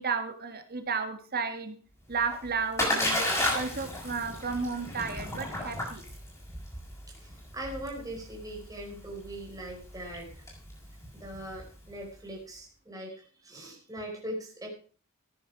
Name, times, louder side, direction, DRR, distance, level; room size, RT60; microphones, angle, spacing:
voice 1, 0.0-1.8 2.1-3.2 3.5-6.0, right 5 dB, 45° right, 7 dB, 1.9 m, -33 dB
Splash splatter, 2.1-11.9, left 1 dB, 15° left, 7.1 m, -34 dB
voice 2, 7.2-10.5 11.1-14.7, right 1 dB, 15° right, -2 dB, 5.0 m, -41 dB
14.5 x 10.0 x 4.9 m, 0.42 s
head